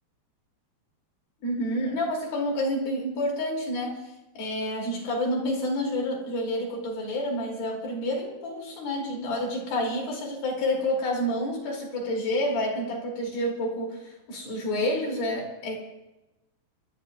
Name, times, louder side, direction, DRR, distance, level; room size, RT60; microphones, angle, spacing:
voice 1, 1.4-4.0 4.4-14.0 14.3-15.8, left 1 dB, 65° left, -1 dB, 4.6 m, -29 dB
29.5 x 12.0 x 2.5 m, 1.0 s
omnidirectional pair, 4.7 m